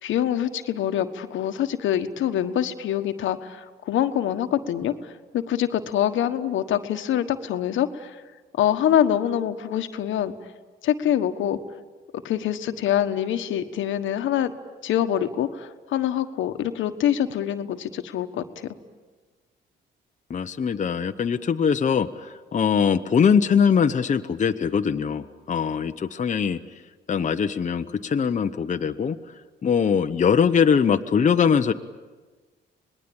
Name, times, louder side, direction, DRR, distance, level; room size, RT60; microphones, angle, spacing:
voice 1, 0.0-8.2 8.6-10.3 10.8-11.6 12.2-14.5 14.8-18.7, left 10 dB, 80° left, 8 dB, 1.4 m, -25 dB
voice 2, 20.3-26.6 27.1-29.2 29.6-31.7, left 6 dB, 40° left, 7 dB, 0.9 m, -22 dB
26.5 x 20.0 x 8.8 m, 1.3 s
cardioid pair, 90°, 20 cm